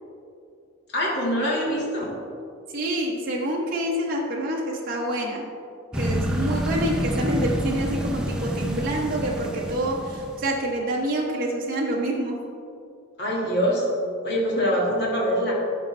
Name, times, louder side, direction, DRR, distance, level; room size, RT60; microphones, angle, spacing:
voice 1, 0.9-2.1 13.2-13.9 14.2-15.5, equal, 50° left, -5 dB, 1.9 m, -24 dB
voice 2, 2.7-5.5 5.9-12.4, right 1 dB, 45° right, -2 dB, 0.8 m, -27 dB
sound 1, 5.9-10.5, equal, 5° right, 0.4 m, -28 dB
12.0 x 5.1 x 3.3 m, 2.5 s
head